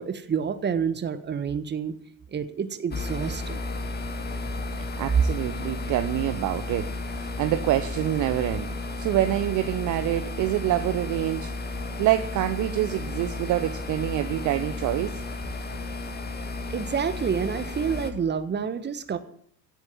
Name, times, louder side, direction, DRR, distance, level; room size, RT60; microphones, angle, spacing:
voice 1, 0.0-2.0 2.3-3.6 16.7-19.2, right 7 dB, 20° right, 12 dB, 1.5 m, -28 dB
sound 1, 2.9-18.1, left 2 dB, 20° left, 2.0 m, -33 dB
voice 2, 5.0-6.9 7.2-11.5 12.0-15.2, right 13 dB, 35° right, 9 dB, 1.0 m, -26 dB
17.0 x 8.1 x 9.3 m, 0.64 s
figure-of-eight pair, 70°, 50 cm